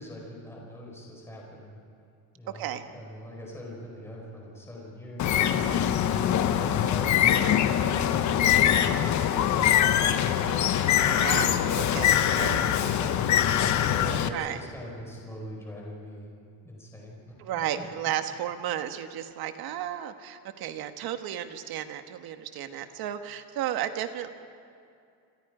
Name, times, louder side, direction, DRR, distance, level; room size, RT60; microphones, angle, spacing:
voice 1, 0.0-1.8 2.3-5.7 6.4-8.4 8.9-10.7 11.9-16.3 16.6-17.4, left 1 dB, 5° left, -3 dB, 5.0 m, -42 dB
voice 2, 2.5-2.8 5.6-6.2 11.0-12.7 14.3-14.6 17.4-24.3, right 11 dB, 50° right, 8 dB, 1.5 m, -34 dB
Bird, 5.2-14.3, left 10 dB, 40° left, 1.0 m, -23 dB
27.0 x 26.5 x 5.0 m, 2.4 s
cardioid pair, 165°, 46 cm